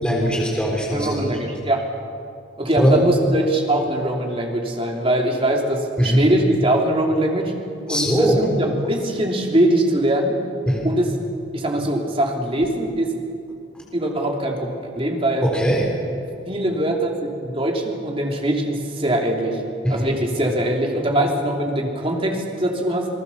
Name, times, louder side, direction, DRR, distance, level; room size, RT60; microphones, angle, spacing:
voice 1, 0.0-1.3 2.8-2.9 6.0-6.2 7.9-8.4 10.7-10.9 15.4-15.8 19.8-20.1, equal, 5° left, -2 dB, 4.0 m, -20 dB
voice 2, 0.9-1.8 2.6-7.5 7.9-10.3 10.8-11.1 11.5-13.1 13.9-15.5 16.5-19.6 19.9-23.1, right 1 dB, 30° right, 1 dB, 3.1 m, -22 dB
28.0 x 19.5 x 7.2 m, 2.4 s
head